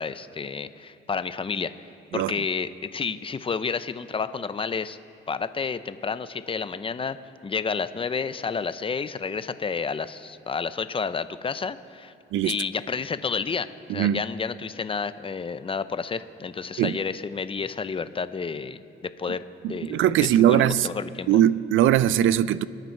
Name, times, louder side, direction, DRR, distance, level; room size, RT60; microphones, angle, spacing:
voice 1, 0.0-1.7 2.1-5.0 5.3-7.2 7.4-12.1 12.4-18.8 19.2-19.4 19.7-21.3, left 5 dB, 25° left, 0.6 m, -30 dB
voice 2, 13.9-14.2 16.8-17.0 19.6-20.9 21.3-22.6, right 11 dB, 80° right, 0.5 m, -20 dB
26.5 x 9.2 x 4.6 m
cardioid pair, 90°, 20 cm